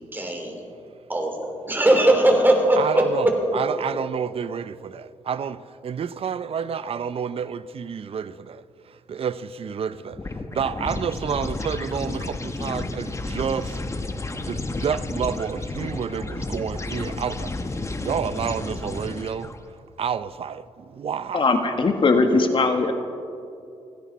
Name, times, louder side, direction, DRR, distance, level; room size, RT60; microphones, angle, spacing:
voice 1, 0.1-0.6 1.1-3.3, right 1 dB, 15° right, 3.5 m, -20 dB
voice 2, 2.8-3.3 3.5-10.2 10.5-13.8 14.4-19.5 20.0-21.6, right 7 dB, 50° right, 0.6 m, -29 dB
sound 1, 10.1-19.6, left 2 dB, 25° left, 1.2 m, -31 dB
voice 3, 21.3-22.9, left 3 dB, 45° left, 1.6 m, -20 dB
29.5 x 10.0 x 4.2 m
cardioid pair, 80°, 12 cm